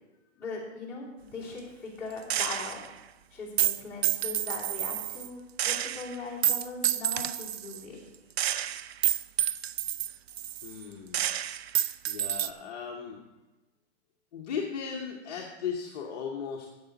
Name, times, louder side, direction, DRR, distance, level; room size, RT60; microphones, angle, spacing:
voice 1, 0.4-2.8 3.3-8.0, left 3 dB, 5° left, -10 dB, 3.1 m, -40 dB
Gunshot gunfire, 2.3-2.9 3.6-5.3 5.6-7.8 8.4-10.8 11.1-12.5, right 11 dB, 60° right, 0.5 m, -29 dB
voice 2, 10.6-11.2 12.1-13.2 14.3-16.7, left 6 dB, 35° left, -1 dB, 1.0 m, -36 dB
13.5 x 8.2 x 4.0 m, 1.1 s
hypercardioid pair, 165°, 35 cm